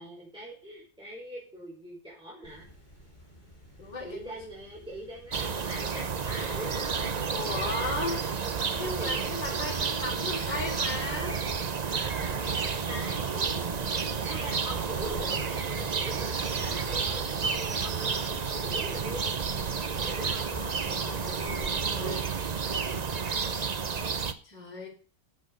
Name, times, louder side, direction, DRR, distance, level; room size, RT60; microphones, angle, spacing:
voice 1, 0.0-2.7 4.0-6.9 9.0-9.1 12.5-13.7 14.2-19.2 20.0-20.5, right 1 dB, 5° right, -5 dB, 5.2 m, -42 dB
sound 1, 2.4-19.8, right 1 dB, 25° left, 4.6 m, -51 dB
voice 2, 3.8-4.4 7.3-8.2 8.5-11.4 20.1-22.3 24.4-24.9, left 2 dB, 90° left, -6 dB, 4.4 m, -37 dB
sound 2, 5.3-24.3, right 5 dB, 55° right, 0.4 m, -31 dB
10.5 x 8.7 x 6.5 m, 0.40 s
omnidirectional pair, 1.9 m